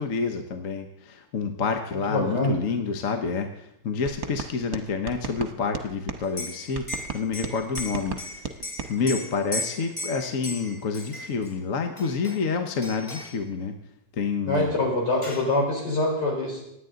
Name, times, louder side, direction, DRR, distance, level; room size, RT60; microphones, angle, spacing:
voice 1, 0.0-8.4 8.9-13.8 14.2-14.8, left 5 dB, 55° left, 5 dB, 1.3 m, -28 dB
voice 2, 2.1-2.5 14.5-16.6, left 2 dB, 75° left, -2 dB, 4.9 m, -24 dB
sound 1, 4.1-6.2 6.7-8.9, right 6 dB, 60° right, 1.4 m, -35 dB
Liquid, 6.2-11.5 12.0-12.5 12.8-13.4 14.6-14.7 14.9-15.6, left 1 dB, 20° left, 1.3 m, -37 dB
25.0 x 9.4 x 3.8 m, 0.80 s
omnidirectional pair, 1.9 m